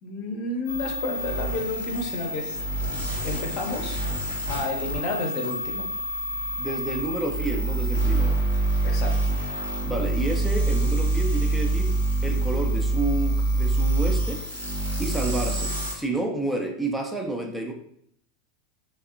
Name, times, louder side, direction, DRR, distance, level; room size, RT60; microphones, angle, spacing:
voice 1, 0.0-2.6 3.2-4.0 4.5-5.9 8.8-9.4, left 2 dB, 45° left, 3 dB, 0.6 m, -31 dB
sound 1, 0.6-15.9, right 2 dB, 75° right, 0.9 m, -26 dB
voice 2, 6.6-8.4 9.8-12.0 12.2-14.4 15.0-17.7, right 2 dB, 5° right, 2 dB, 0.4 m, -30 dB
3.4 x 2.2 x 2.4 m, 0.69 s
figure-of-eight pair, 85°, 0 cm